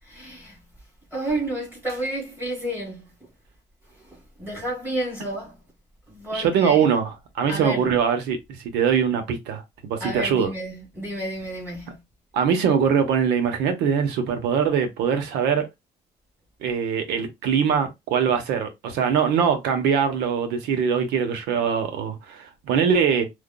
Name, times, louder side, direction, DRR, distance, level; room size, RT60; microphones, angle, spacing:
voice 1, 0.0-0.6 1.1-3.3 3.9-5.6 6.1-6.8 7.5-7.9 10.0-12.0, right 1 dB, 10° right, 2.5 m, -31 dB
voice 2, 6.3-9.6 9.9-10.5 12.3-15.7 16.6-23.3, right 7 dB, 90° right, 1.0 m, -22 dB
4.8 x 2.5 x 2.2 m
cardioid pair, 110°, 17 cm